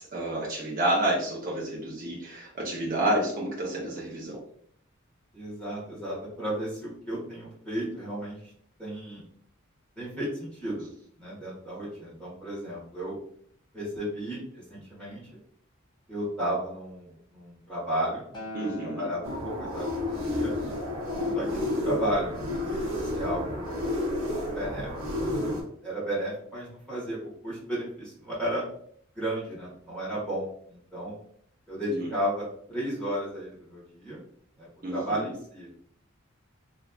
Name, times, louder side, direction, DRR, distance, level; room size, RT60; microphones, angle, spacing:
voice 1, 0.0-4.4 18.5-19.1 31.9-32.1 34.8-35.2, right 1 dB, 45° right, -5 dB, 0.7 m, -29 dB
voice 2, 5.3-8.5 8.8-9.2 10.0-10.9 11.2-13.1 13.7-15.2 16.1-18.2 18.6-20.5 21.3-23.8 24.5-24.9 25.3-25.5 25.8-28.6 29.1-31.2 31.7-34.2 34.6-35.7, right 1 dB, 5° left, -9 dB, 1.4 m, -33 dB
Acoustic guitar, 18.3-22.6 23.5-23.6, right 1 dB, 20° left, 0.6 m, -45 dB
sound 1, 19.2-25.6, left 1 dB, 85° right, 0.9 m, -31 dB
3.2 x 2.4 x 2.4 m, 0.62 s
head